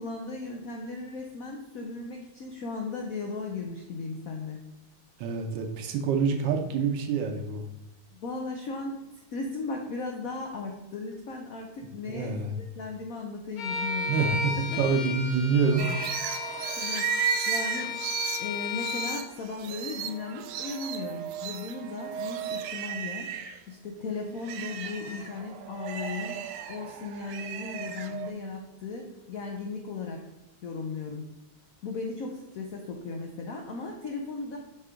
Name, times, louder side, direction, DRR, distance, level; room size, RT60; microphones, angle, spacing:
voice 1, 0.0-4.6 8.1-14.4 16.3-17.9 18.4-23.3 23.7-26.4 26.7-30.2 30.6-31.3 31.8-34.6, left 3 dB, 90° left, 2 dB, 0.7 m, -36 dB
voice 2, 5.2-7.6 12.1-12.6 14.1-15.9, right 5 dB, 70° right, 3 dB, 1.3 m, -27 dB
Bowed string instrument, 13.6-19.3, left 4 dB, 65° left, 0.9 m, -34 dB
sound 1, 15.8-23.6 24.0-28.3, right 8 dB, 90° right, 1.5 m, -34 dB
5.6 x 3.5 x 5.0 m, 0.96 s
omnidirectional pair, 2.3 m